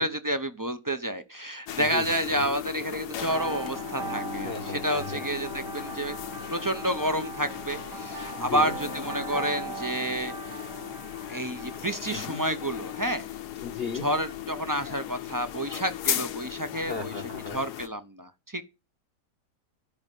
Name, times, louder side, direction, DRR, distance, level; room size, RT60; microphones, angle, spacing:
voice 1, 0.0-6.2 6.5-10.6 11.3-13.3 14.0-17.1 17.5-18.6, right 1 dB, 30° right, 0.4 m, -30 dB
sound 1, 1.7-17.9, left 11 dB, 70° left, 1.4 m, -37 dB
voice 2, 1.8-2.5 4.4-5.3 8.4-8.7 12.1-12.4 13.6-14.1 16.9-17.6, left 6 dB, 45° left, 0.9 m, -36 dB
sound 2, 3.2-12.8, right 2 dB, 80° right, 6.6 m, -39 dB
13.0 x 5.5 x 9.1 m
omnidirectional pair, 1.8 m